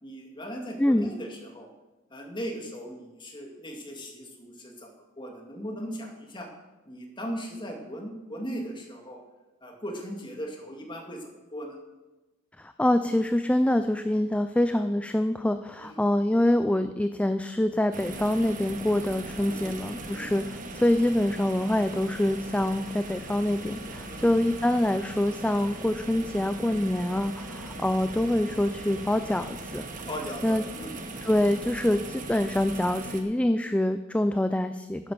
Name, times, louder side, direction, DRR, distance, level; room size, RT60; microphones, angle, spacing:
voice 1, 0.0-1.7 2.1-6.5 6.9-9.2 9.6-11.2 11.5-11.8 15.8-16.0 19.5-19.7 20.1-20.3 24.1-24.3 30.1-30.9, equal, 25° left, 1 dB, 2.2 m, -38 dB
voice 2, 0.8-1.1 12.6-29.8 30.4-30.6 31.2-35.1, left 1 dB, 5° left, 9 dB, 0.4 m, -25 dB
sound 1, 17.9-33.2, right 2 dB, 40° right, 1.5 m, -39 dB
11.0 x 9.6 x 6.9 m, 1.1 s
head